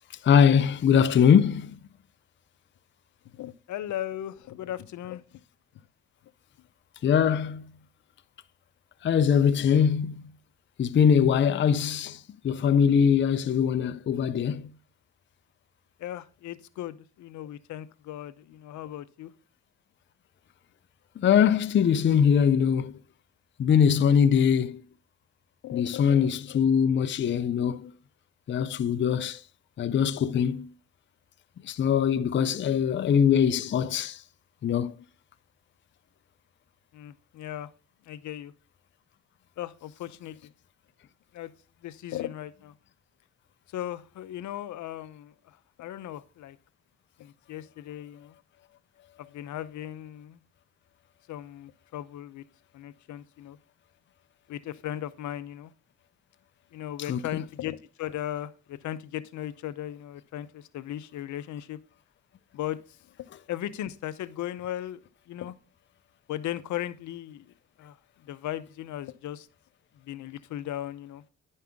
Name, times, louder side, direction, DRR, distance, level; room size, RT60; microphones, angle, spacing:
voice 1, 0.2-1.8 7.0-7.6 9.0-10.1 10.8-14.6 21.2-22.9 23.6-24.8 25.7-27.9 28.5-29.4 29.8-30.7 31.7-34.2 34.6-34.9 57.1-57.2, left 7 dB, 40° left, 0.5 m, -22 dB
voice 2, 3.3-5.2 16.0-19.3 25.6-26.6 36.9-37.7 38.1-38.5 39.6-40.5 41.3-41.5 41.8-42.7 43.7-46.6 47.2-48.3 49.2-50.4 51.3-52.4 52.7-53.6 54.5-55.7 56.7-61.8 62.5-62.8 63.5-65.0 65.3-65.5 66.3-68.0 68.3-69.5 70.1-71.2, left 12 dB, 75° left, 0.7 m, -37 dB
10.5 x 5.5 x 3.5 m
cardioid pair, 90°, 30 cm